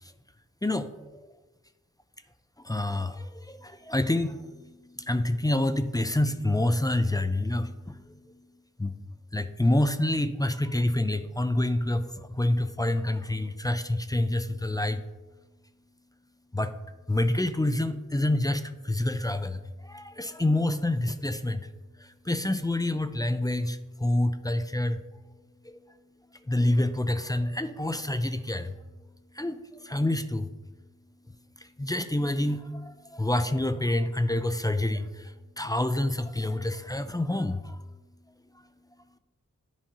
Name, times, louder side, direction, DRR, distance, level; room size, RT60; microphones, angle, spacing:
voice 1, 0.6-1.3 2.6-8.5 8.8-9.0 9.3-15.0 16.5-16.7 17.1-21.7 22.0-25.0 25.6-25.7 26.4-28.8 29.3-30.5 31.6-37.8, left 1 dB, 10° left, 10 dB, 0.4 m, -28 dB
10.0 x 5.1 x 2.8 m, 1.2 s
cardioid pair, 40°, 32 cm